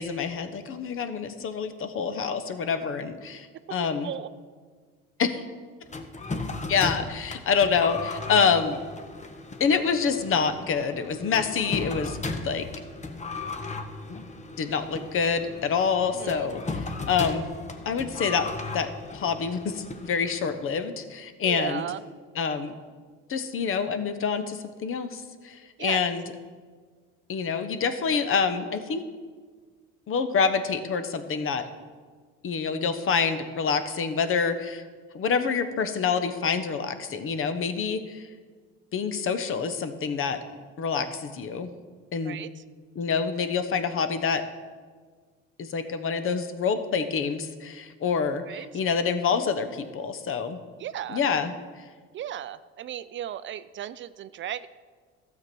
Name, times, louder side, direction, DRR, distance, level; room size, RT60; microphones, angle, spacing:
voice 1, 0.0-4.1 5.2-5.4 6.7-8.8 9.6-12.2 12.4-12.6 14.1-14.2 14.6-17.4 17.8-18.9 19.1-21.8 22.3-22.7 23.3-26.2 27.3-29.0 30.1-31.7 32.4-34.8 35.1-38.3 38.9-40.4 40.8-41.7 42.1-42.4 43.0-44.4 45.6-50.6 51.1-51.8, left 6 dB, 45° left, 10 dB, 1.1 m, -27 dB
sound 1, 5.9-20.6, left 3 dB, 25° left, 1.1 m, -36 dB
voice 2, 16.1-16.5 21.4-22.0 25.8-26.1 42.2-42.6 48.5-48.7 50.8-51.2 52.1-54.7, right 11 dB, 40° right, 15 dB, 0.4 m, -35 dB
12.5 x 7.3 x 6.1 m, 1.5 s
supercardioid pair, 85°, 29 cm